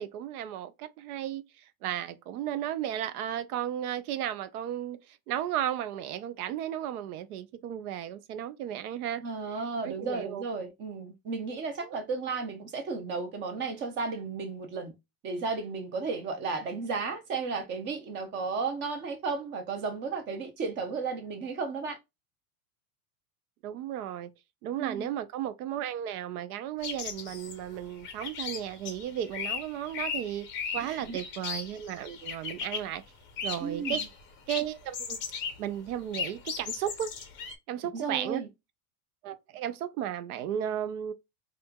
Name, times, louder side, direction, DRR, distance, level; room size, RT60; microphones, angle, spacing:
voice 1, 0.0-1.4 1.8-5.0 5.3-9.2 9.8-10.4 11.8-12.0 23.6-24.3 24.6-30.5 30.7-33.0 33.4-34.0 34.5-35.2 35.6-37.1 37.7-38.4 39.2-41.1, right 11 dB, 75° right, 0.6 m, -34 dB
voice 2, 9.2-14.9 15.2-22.0 24.8-25.1 30.8-31.2 33.6-34.0 37.9-38.5, right 4 dB, 25° right, 0.6 m, -34 dB
sound 1, 26.8-33.0 33.4-34.2 34.5-35.6 35.9-37.5, left 6 dB, 25° left, 0.6 m, -37 dB
4.3 x 2.5 x 2.2 m
supercardioid pair, 155°, 45 cm